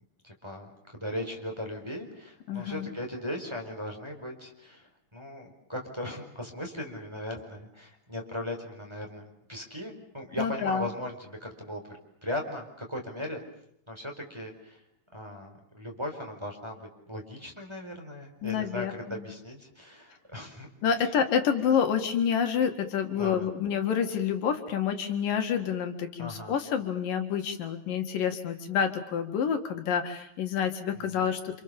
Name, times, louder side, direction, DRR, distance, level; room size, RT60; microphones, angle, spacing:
voice 1, 0.2-13.4 13.9-14.8 15.1-20.7 21.0-21.1 23.1-23.5 26.2-26.6 30.9-31.2, left 1 dB, 5° right, 1 dB, 4.5 m, -38 dB
voice 2, 2.5-2.9 10.4-10.9 18.4-19.3 20.8-31.6, left 7 dB, 80° left, 6 dB, 3.7 m, -28 dB
30.0 x 27.5 x 7.1 m, 0.72 s
omnidirectional pair, 3.9 m